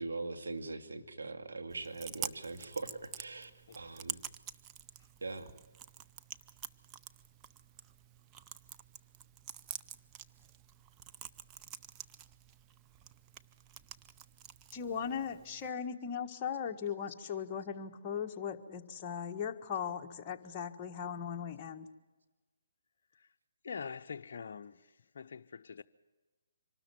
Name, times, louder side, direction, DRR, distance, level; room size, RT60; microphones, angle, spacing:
voice 1, 0.0-3.5 3.8-4.2 5.2-5.5, right 3 dB, 80° right, 2.2 m, -41 dB
Chewing mastication, 1.7-15.7, right 9 dB, 20° right, 0.6 m, -48 dB
voice 2, 14.7-21.9, left 7 dB, 25° left, 1.5 m, -38 dB
voice 3, 23.6-24.9 25.1-25.8, left 6 dB, 60° left, 0.6 m, -44 dB
25.5 x 13.0 x 9.3 m
hypercardioid pair, 150°, 0 cm